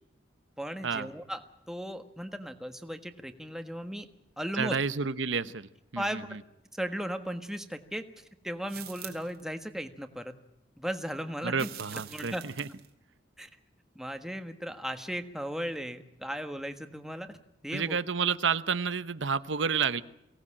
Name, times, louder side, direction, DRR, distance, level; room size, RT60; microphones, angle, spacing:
voice 1, 0.6-1.4 1.7-4.1 4.4-4.8 6.0-6.3 6.7-10.3 10.8-11.7 12.1-12.4 13.4-13.5 13.9-17.3 17.6-18.0, equal, ahead, 7 dB, 1.4 m, -36 dB
voice 2, 4.5-6.4 11.4-12.7 17.7-20.0, right 5 dB, 85° right, 13 dB, 0.9 m, -30 dB
sound 1, 8.7-9.4 11.5-12.9, right 12 dB, 55° right, 2.0 m, -45 dB
23.5 x 18.0 x 8.7 m, 0.84 s
head